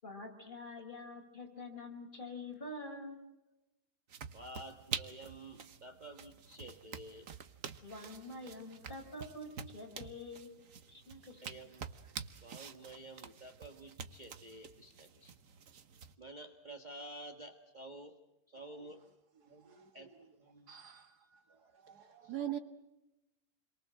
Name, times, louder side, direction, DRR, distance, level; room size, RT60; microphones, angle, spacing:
voice 1, 0.0-3.2 7.8-10.5 10.9-11.6, left 2 dB, 30° left, 5.6 m, -46 dB
sound 1, 4.1-16.1, right 6 dB, 55° right, 1.4 m, -48 dB
voice 2, 4.3-7.3 8.2-8.3 11.4-11.9 12.4-15.3 16.2-18.2 18.5-19.0 19.5-20.1 20.4-20.8 22.2-22.4, right 1 dB, 25° right, 1.8 m, -51 dB
voice 3, 20.7-21.2 21.8-22.6, right 11 dB, 70° right, 2.1 m, -42 dB
29.5 x 23.5 x 7.6 m
omnidirectional pair, 1.8 m